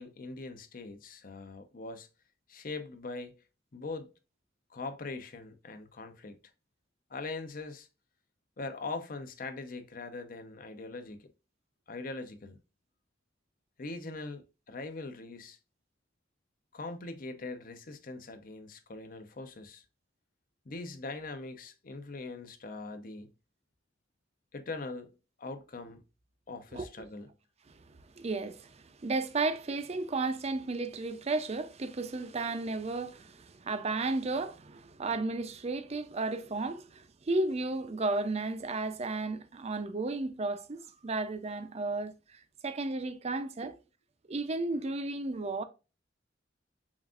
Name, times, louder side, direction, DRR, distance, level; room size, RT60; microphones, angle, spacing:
voice 1, 0.0-2.1 2.5-3.4 3.7-4.1 4.7-6.4 7.1-7.9 8.6-11.3 11.9-12.6 13.8-15.6 16.7-19.8 20.7-23.3 24.5-25.1 25.4-26.0 26.5-27.3 43.6-43.7, left 3 dB, 50° left, 0.7 m, -41 dB
voice 2, 28.2-43.7 44.3-45.6, right 3 dB, 35° right, 0.5 m, -33 dB
7.1 x 2.5 x 2.4 m
head